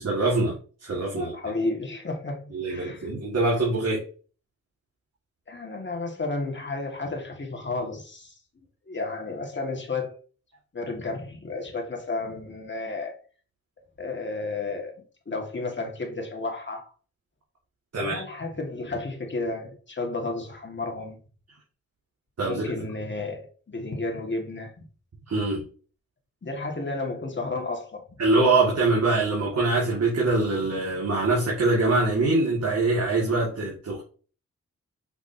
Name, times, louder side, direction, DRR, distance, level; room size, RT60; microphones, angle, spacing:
voice 1, 0.0-1.3 2.5-4.0 17.9-18.2 22.4-22.9 25.3-25.6 28.2-34.0, right 2 dB, 60° right, 2.0 m, -24 dB
voice 2, 1.2-3.1 5.5-8.3 8.9-10.2 10.7-13.2 14.0-16.9 18.0-21.2 22.5-24.8 26.4-28.1, left 3 dB, 40° left, 1.9 m, -32 dB
5.9 x 5.8 x 2.8 m
cardioid pair, 60°, 30 cm